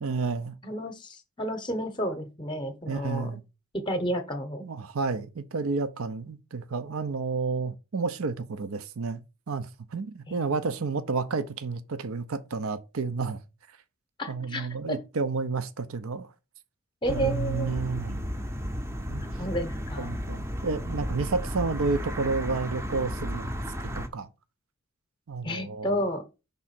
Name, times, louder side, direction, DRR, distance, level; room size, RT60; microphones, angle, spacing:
voice 1, 0.0-0.5 2.9-3.4 4.6-9.2 9.5-13.4 14.3-16.3 17.1-18.2 19.1-19.2 20.0-23.5 24.0-24.3 25.3-26.0, right 4 dB, 75° right, 0.6 m, -31 dB
voice 2, 0.6-3.3 3.7-4.6 10.3-10.5 14.2-15.0 17.0-17.8 19.4-20.2 25.4-26.2, equal, 20° left, 0.8 m, -31 dB
sound 1, 17.0-24.1, equal, 10° right, 0.6 m, -33 dB
5.5 x 3.6 x 5.8 m
head